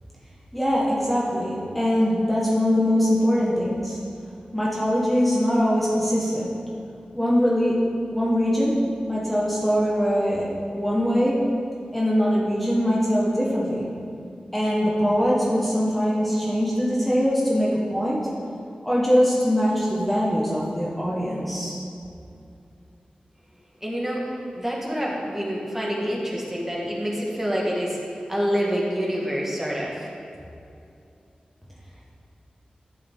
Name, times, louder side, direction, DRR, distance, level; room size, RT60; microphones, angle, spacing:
voice 1, 0.5-4.0 4.5-6.5 7.1-7.8 8.1-8.8 9.1-10.5 10.7-11.4 11.9-13.9 14.5-18.3 18.8-21.7, equal, 5° left, -6 dB, 1.6 m, -22 dB
voice 2, 23.8-28.0 28.3-30.1, equal, 15° right, -4 dB, 1.8 m, -27 dB
12.5 x 6.9 x 3.8 m, 2.6 s
wide cardioid pair, 80°, 3 cm